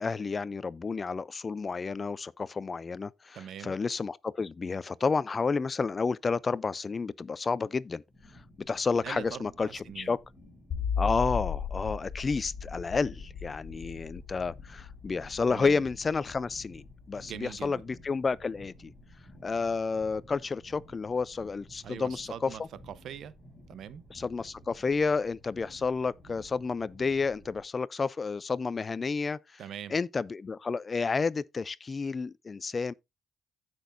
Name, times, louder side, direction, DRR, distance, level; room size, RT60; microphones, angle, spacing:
voice 1, 0.0-3.4 3.6-8.0 8.7-9.7 10.0-10.2 11.0-18.9 19.4-22.5 24.1-29.6 29.9-32.9, left 4 dB, 35° left, 0.4 m, -30 dB
voice 2, 3.3-3.8 9.0-10.2 15.5-15.8 17.2-17.8 21.8-23.4 23.7-24.0 29.6-29.9, right 9 dB, 70° right, 0.7 m, -42 dB
sound 1, 8.1-27.6, equal, 10° left, 6.9 m, -54 dB
sound 2, 10.7-17.9, left 6 dB, 60° left, 2.3 m, -37 dB
15.5 x 6.1 x 2.5 m
cardioid pair, 90°, 0 cm